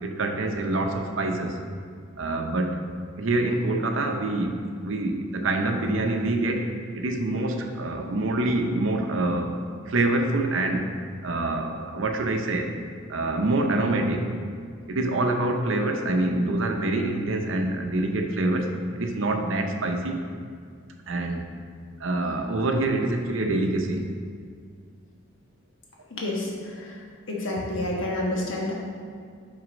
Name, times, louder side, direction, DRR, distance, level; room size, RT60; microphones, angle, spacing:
voice 1, 0.0-1.6 2.2-2.8 3.2-9.5 9.9-10.9 11.2-12.7 13.1-14.3 14.9-20.3 21.1-21.4 22.0-24.1, right 2 dB, 65° right, 4 dB, 0.6 m, -26 dB
voice 2, 26.1-26.5 26.8-26.9 27.3-28.7, left 1 dB, 65° left, -3 dB, 1.3 m, -28 dB
6.3 x 4.0 x 5.0 m, 2.1 s
head